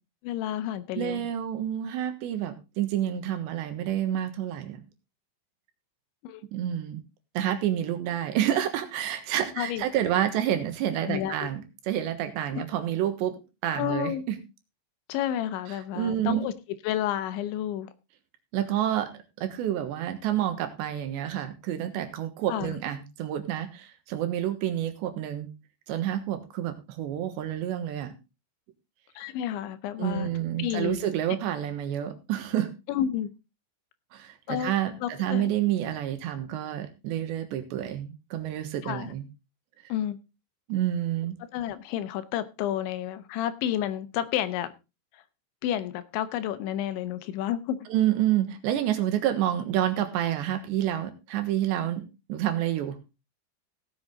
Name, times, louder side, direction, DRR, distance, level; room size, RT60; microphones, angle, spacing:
voice 1, 0.2-1.3 6.2-6.4 9.6-9.9 11.1-11.5 12.5-12.7 13.7-14.2 15.1-16.5 16.8-17.9 22.5-22.8 29.2-30.3 30.6-31.0 32.9-33.3 34.5-34.7 35.0-35.5 38.8-39.1 39.9-40.2 41.5-44.7 45.1-45.2 45.6-47.8, left 11 dB, 90° left, 3.3 m, -30 dB
voice 2, 1.0-4.8 6.5-7.0 7.4-13.4 13.6-14.4 15.9-16.5 18.5-19.1 19.4-25.5 25.9-28.1 30.0-32.7 34.1-39.2 40.7-41.3 47.9-53.0, right 11 dB, 80° right, 3.6 m, -29 dB
17.0 x 7.8 x 3.9 m
omnidirectional pair, 5.1 m